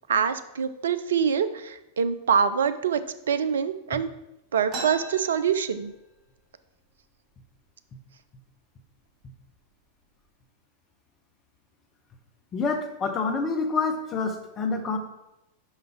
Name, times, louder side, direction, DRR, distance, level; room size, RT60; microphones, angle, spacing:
voice 1, 0.1-4.1 4.5-5.9, right 7 dB, 65° right, 12 dB, 0.4 m, -25 dB
sound 1, 4.7-6.3 6.6-6.7 7.0-7.6 8.2-8.4 9.1-9.3 9.7-10.2, right 2 dB, 35° right, 1.7 m, -39 dB
voice 2, 12.5-15.0, left 4 dB, 25° left, 6 dB, 0.9 m, -27 dB
5.7 x 5.2 x 4.5 m, 0.90 s
figure-of-eight pair, 90°, 0 cm